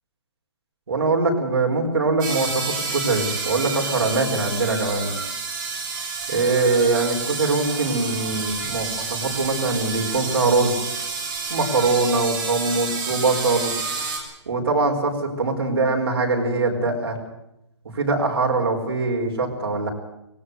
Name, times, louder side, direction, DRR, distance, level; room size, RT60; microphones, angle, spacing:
voice 1, 0.9-5.1 6.3-10.8 11.5-13.7 14.5-17.2 17.9-19.9, right 3 dB, 55° right, 2 dB, 4.8 m, -22 dB
sound 1, 2.2-14.2, right 4 dB, 15° right, 3.5 m, -29 dB
20.0 x 17.0 x 8.2 m, 0.86 s
hypercardioid pair, 180°, 15 cm